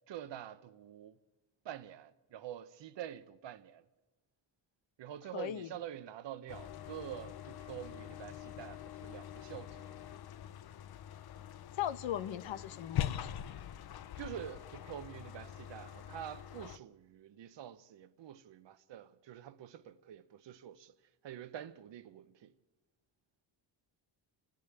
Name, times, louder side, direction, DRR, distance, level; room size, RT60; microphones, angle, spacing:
voice 1, 0.1-1.2 1.6-3.8 5.0-10.2 14.2-20.9 21.2-22.5, right 10 dB, 70° right, 1.0 m, -47 dB
voice 2, 5.3-5.7 11.8-13.3, left 11 dB, 80° left, 1.1 m, -38 dB
sound 1, 6.5-16.8, left 11 dB, 55° left, 0.7 m, -43 dB
29.5 x 10.5 x 8.9 m
cardioid pair, 100°, 45 cm